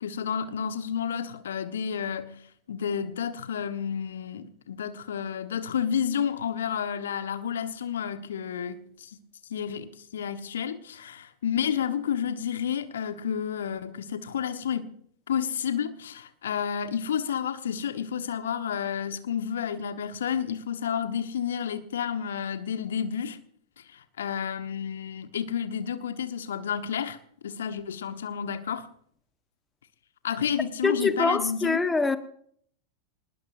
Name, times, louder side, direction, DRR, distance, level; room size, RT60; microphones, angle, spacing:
voice 1, 0.0-2.4 2.7-9.2 9.5-14.9 15.3-23.4 23.9-27.2 27.4-28.9 30.2-31.8, left 8 dB, 65° left, 1.3 m, -30 dB
voice 2, 30.8-32.2, left 3 dB, 10° left, 1.3 m, -24 dB
24.5 x 20.0 x 2.6 m
figure-of-eight pair, 90°, 0 cm